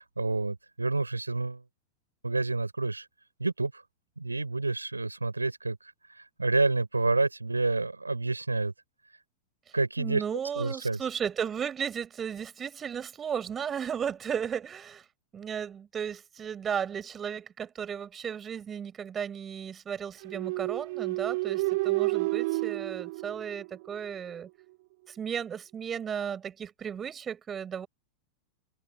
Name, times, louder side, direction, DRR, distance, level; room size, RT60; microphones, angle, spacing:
voice 1, 0.0-1.6 2.2-3.1 3.4-3.8 4.2-5.8 6.1-8.7 9.7-10.2 10.6-11.0, right 3 dB, 80° right, 6.5 m, -29 dB
voice 2, 10.0-15.0 15.3-24.5 25.1-27.9, right 8 dB, 20° right, 6.1 m, -35 dB
sound 1, 20.2-24.1, right 22 dB, 50° right, 0.9 m, -30 dB
figure-of-eight pair, 90°, 0 cm